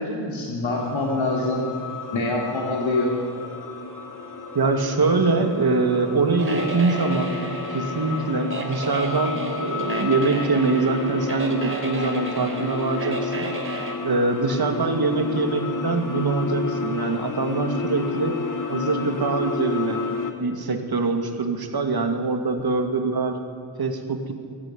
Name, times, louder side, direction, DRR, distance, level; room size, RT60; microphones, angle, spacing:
voice 1, 0.0-1.7 2.1-3.2 22.6-22.7, left 2 dB, 80° left, -1 dB, 3.3 m, -25 dB
sound 1, 0.7-20.3, left 4 dB, 45° left, 2.2 m, -31 dB
voice 2, 4.5-7.4 7.7-13.5 14.0-18.4 18.7-20.0 20.4-23.4 23.8-24.3, right 3 dB, 55° right, 5 dB, 2.5 m, -23 dB
sound 2, 6.4-13.9, right 2 dB, 25° right, 3.8 m, -33 dB
23.5 x 14.0 x 9.6 m, 2.4 s
wide cardioid pair, 105°, 46 cm